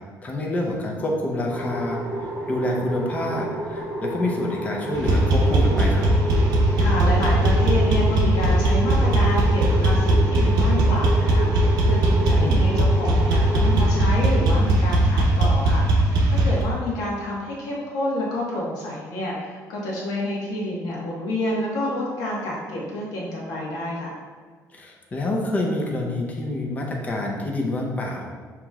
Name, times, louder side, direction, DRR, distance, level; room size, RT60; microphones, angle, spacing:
voice 1, 0.2-6.1 12.4-12.7 24.7-28.3, left 1 dB, 25° left, 0 dB, 0.6 m, -27 dB
sound 1, 1.5-14.0, equal, 30° right, 0.9 m, -30 dB
sound 2, 4.9-16.6, right 1 dB, 85° right, 0.7 m, -19 dB
voice 2, 6.8-24.1, left 1 dB, 75° left, -5 dB, 1.3 m, -29 dB
6.9 x 3.0 x 2.4 m, 1.5 s
cardioid pair, 165°, 7 cm